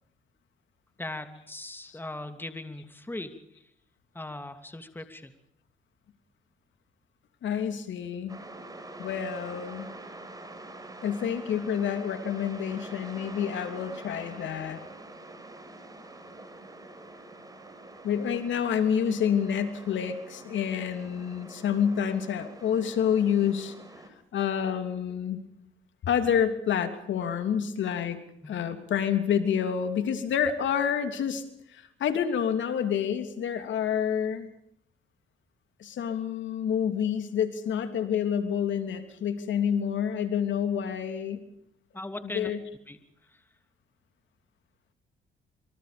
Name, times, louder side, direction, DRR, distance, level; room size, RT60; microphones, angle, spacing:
voice 1, 1.0-3.3 4.1-5.3 28.4-28.6 41.9-42.5 42.9-43.0, left 2 dB, 10° left, 7 dB, 2.8 m, -39 dB
voice 2, 7.4-8.4 9.0-9.9 11.0-14.8 18.0-23.7 24.3-25.4 26.0-28.2 28.5-31.4 31.7-34.5 35.8-41.4 42.2-42.6, left 8 dB, 70° left, 8 dB, 3.1 m, -28 dB
sound 1, 8.3-24.1, right 2 dB, 20° right, 6.0 m, -46 dB
26.5 x 25.0 x 5.2 m, 0.74 s
cardioid pair, 90°, 20 cm